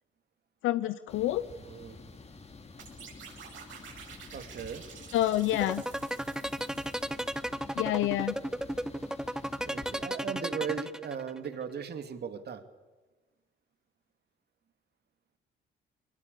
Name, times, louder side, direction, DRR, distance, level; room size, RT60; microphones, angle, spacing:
voice 1, 0.6-1.4 5.1-5.8 7.8-8.4, left 14 dB, 85° left, 14 dB, 0.7 m, -28 dB
sound 1, 1.1-10.0, left 4 dB, 30° left, 2.5 m, -50 dB
voice 2, 1.6-2.0 4.3-4.9 9.6-12.6, right 7 dB, 55° right, 8 dB, 2.5 m, -38 dB
sound 2, 2.8-7.6, right 7 dB, 75° right, 7.4 m, -50 dB
sound 3, 5.5-11.5, equal, 5° right, 0.9 m, -33 dB
22.5 x 20.5 x 8.4 m, 1.3 s
cardioid pair, 90°, 20 cm